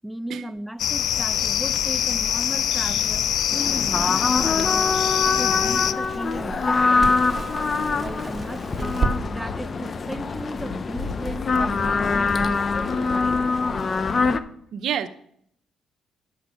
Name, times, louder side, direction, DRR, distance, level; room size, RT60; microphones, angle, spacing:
voice 1, 0.0-5.0 5.4-7.3 7.9-9.0 9.3-13.4, right 1 dB, ahead, 0.7 m, -35 dB
sound 1, 0.8-5.9, left 10 dB, 75° left, 0.4 m, -24 dB
Crackle, 1.3-9.1, right 4 dB, 30° right, 1.5 m, -34 dB
sound 2, 3.5-14.4, left 4 dB, 40° left, 0.7 m, -24 dB
voice 2, 14.7-15.1, right 9 dB, 70° right, 0.8 m, -27 dB
10.5 x 7.2 x 6.2 m
cardioid pair, 90°, 0 cm